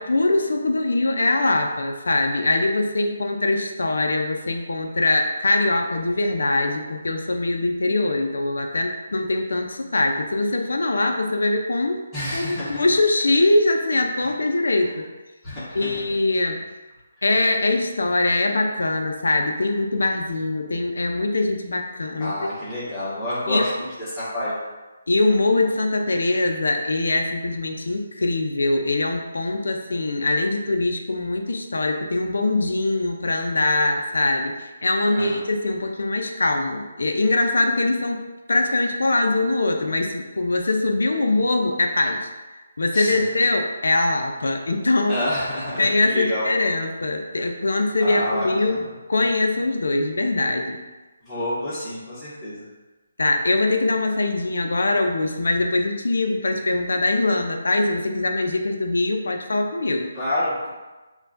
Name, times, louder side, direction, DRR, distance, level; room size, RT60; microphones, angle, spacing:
voice 1, 0.0-12.0 12.3-15.1 15.7-16.6 17.2-22.4 23.5-23.6 25.1-34.5 34.8-38.2 38.5-42.3 42.8-45.2 45.8-48.8 49.1-50.8 53.2-60.1, left 2 dB, 80° left, 3 dB, 0.5 m, -22 dB
voice 2, 12.1-12.8 15.4-15.9 22.2-24.6 35.1-35.4 42.9-43.2 45.1-46.5 48.0-48.8 51.3-52.6 60.1-60.7, left 1 dB, ahead, -17 dB, 1.3 m, -28 dB
6.6 x 2.3 x 2.6 m, 1.2 s
figure-of-eight pair, 155°, 0 cm